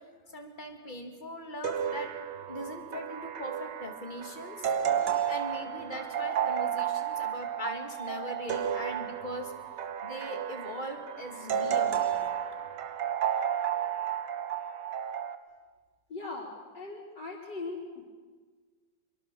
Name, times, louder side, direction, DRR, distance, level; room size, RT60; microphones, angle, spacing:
voice 1, 0.3-2.1 2.5-4.7 5.3-9.5 10.0-12.2, left 1 dB, 25° left, 4 dB, 2.6 m, -40 dB
sound 1, 1.6-15.4, right 9 dB, 75° right, 1.7 m, -32 dB
voice 2, 16.1-18.0, left 3 dB, 65° left, -5 dB, 4.2 m, -39 dB
24.5 x 23.0 x 7.1 m, 1.4 s
omnidirectional pair, 2.0 m